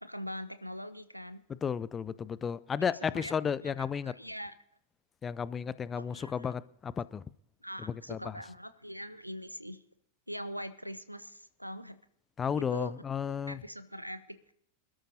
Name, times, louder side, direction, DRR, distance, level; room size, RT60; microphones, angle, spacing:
voice 1, 0.0-1.4 2.8-4.5 5.9-6.5 7.6-9.8 10.3-12.0 12.6-14.4, equal, 90° right, 0.8 m, -43 dB
voice 2, 1.6-4.1 5.2-7.2 8.1-8.3 12.4-13.6, left 7 dB, 20° left, 0.5 m, -33 dB
26.0 x 12.5 x 2.8 m
figure-of-eight pair, 90°, 0 cm